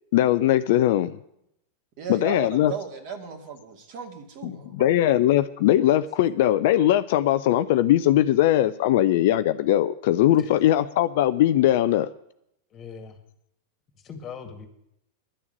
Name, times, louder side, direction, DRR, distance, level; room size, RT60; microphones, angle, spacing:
voice 1, 0.1-1.2 2.1-2.7 4.4-12.1, left 13 dB, 50° left, 13 dB, 0.5 m, -20 dB
voice 2, 2.0-4.8, right 5 dB, 45° right, 4 dB, 2.4 m, -36 dB
voice 3, 12.7-13.2 13.9-14.7, left 6 dB, 30° left, 6 dB, 2.2 m, -40 dB
11.5 x 7.1 x 9.6 m, 0.77 s
figure-of-eight pair, 90°, 0 cm